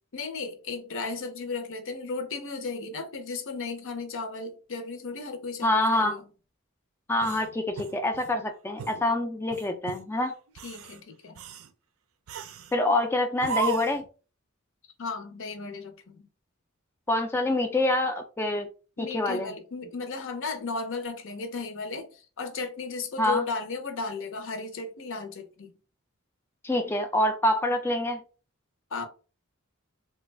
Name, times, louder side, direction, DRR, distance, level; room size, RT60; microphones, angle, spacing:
voice 1, 0.1-6.3 10.6-11.4 15.0-16.3 19.0-25.7 28.9-29.1, left 4 dB, 65° left, 0.6 m, -35 dB
voice 2, 5.6-6.1 7.1-10.3 12.7-14.0 17.1-18.7 19.0-19.5 23.2-23.4 26.6-28.2, left 1 dB, 10° left, 0.3 m, -26 dB
sound 1, 7.2-8.4 8.8-9.0 9.5-10.1 10.5-11.0 11.4-11.7 12.3-12.8 13.4-14.1, right 6 dB, 70° right, 0.4 m, -36 dB
3.3 x 2.2 x 3.2 m
head